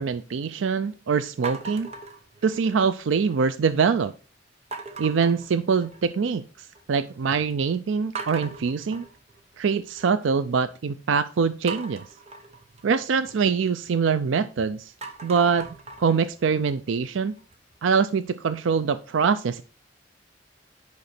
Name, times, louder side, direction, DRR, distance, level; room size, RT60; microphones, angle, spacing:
voice 1, 0.0-1.9 2.4-4.1 5.0-9.1 9.6-12.0 12.8-14.9 15.2-15.7 16.0-17.3 17.8-19.6, right 5 dB, 80° right, 13 dB, 0.4 m, -24 dB
sound 1, 1.4-2.9 3.3-3.8 4.7-6.2 6.6-7.1 7.5-7.6 8.1-10.3 11.7-14.5 14.9-17.8, right 4 dB, 35° right, 1.0 m, -40 dB
9.5 x 5.7 x 4.2 m, 0.36 s
head